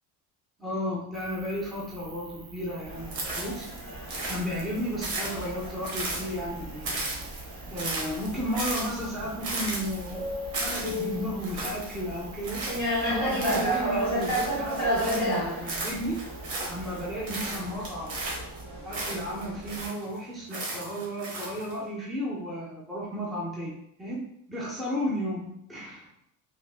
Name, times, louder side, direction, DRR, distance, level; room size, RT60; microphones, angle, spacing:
voice 1, 0.6-3.7 4.2-7.0 7.7-10.3 10.6-16.2 16.7-18.2 18.8-24.2 24.5-26.1, equal, ahead, -5 dB, 0.3 m, -33 dB
sound 1, 1.1-17.4, right 4 dB, 55° right, 0.5 m, -50 dB
sound 2, 2.8-19.9, equal, 25° right, 1.2 m, -34 dB
sound 3, 3.1-3.8 4.1-6.5 6.8-15.4 15.7-17.0 17.3-20.1 20.5-21.7, right 2 dB, 80° right, 1.1 m, -35 dB
3.3 x 2.7 x 2.3 m, 0.73 s
cardioid pair, 180°, 35 cm